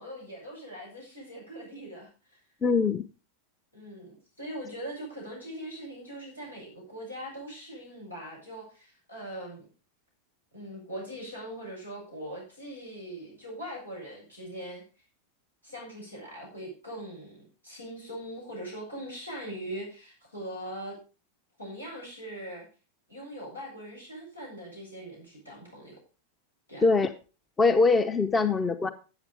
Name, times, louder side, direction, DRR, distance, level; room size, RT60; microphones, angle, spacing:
voice 1, 0.0-2.4 3.7-9.7 10.5-14.8 15.6-21.0 21.6-22.7 23.1-26.0 26.7-26.9, right 1 dB, 85° left, -4 dB, 7.9 m, -41 dB
voice 2, 2.6-3.0 26.8-27.1 27.6-28.9, left 4 dB, 15° left, 12 dB, 0.8 m, -22 dB
13.0 x 7.8 x 5.0 m, 0.33 s
figure-of-eight pair, 90°, 0 cm